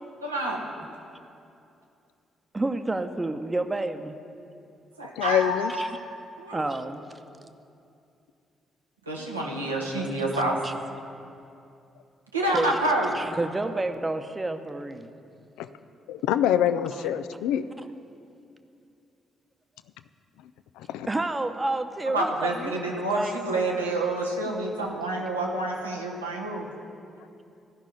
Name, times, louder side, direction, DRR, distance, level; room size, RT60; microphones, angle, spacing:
voice 1, 0.2-0.6 5.0-6.0 6.4-6.6 9.1-10.6 12.3-13.1 22.1-26.7, right 2 dB, 90° right, -1 dB, 1.1 m, -28 dB
voice 2, 2.5-4.2 5.2-5.3 5.7-6.0 6.5-7.0 9.8-9.9 10.3-10.7 12.5-12.8 13.1-15.1 16.9-17.0 21.1-23.6 24.4-24.6, right 2 dB, 20° right, 8 dB, 0.9 m, -30 dB
voice 3, 5.2-5.7 15.6-15.7 16.1-17.6 20.8-21.1, left 10 dB, 70° left, 12 dB, 0.4 m, -25 dB
14.0 x 6.1 x 9.8 m, 2.6 s
figure-of-eight pair, 40°, 0 cm